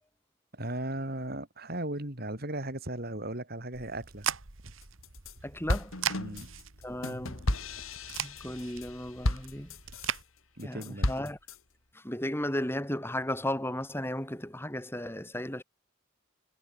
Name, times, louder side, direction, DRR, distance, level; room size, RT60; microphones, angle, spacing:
voice 1, 0.5-4.3 6.2-6.5 10.6-11.1, right 1 dB, 50° right, 4.2 m, -36 dB
sound 1, 3.7-10.2, right 8 dB, 75° right, 2.1 m, -39 dB
sound 2, 4.8-5.3 5.7-10.2 10.6-11.6, left 1 dB, 80° left, 3.4 m, -33 dB
voice 2, 5.4-5.9 6.8-7.5 8.2-9.8 10.6-11.4 11.9-15.6, left 1 dB, 10° left, 3.7 m, -35 dB
head